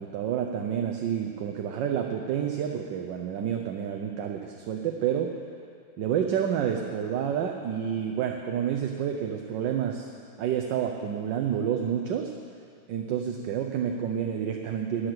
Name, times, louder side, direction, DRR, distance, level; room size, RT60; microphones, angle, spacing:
voice 1, 0.0-5.4 6.0-10.1 10.4-12.3 12.9-15.1, right 8 dB, 70° right, 3 dB, 1.3 m, -29 dB
13.0 x 9.7 x 6.0 m, 2.3 s
omnidirectional pair, 2.2 m